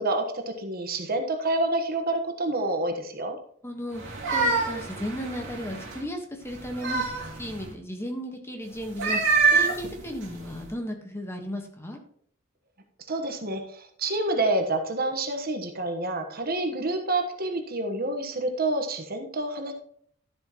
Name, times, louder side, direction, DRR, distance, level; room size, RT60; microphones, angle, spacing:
voice 1, 0.0-3.4 13.1-19.7, right 2 dB, 45° right, 5 dB, 1.3 m, -28 dB
voice 2, 3.6-12.0, equal, 10° left, 3 dB, 1.5 m, -35 dB
sound 1, 3.9-6.0 6.5-7.7 8.8-10.7, right 4 dB, 65° right, 2.8 m, -26 dB
12.5 x 7.6 x 3.1 m, 0.63 s
head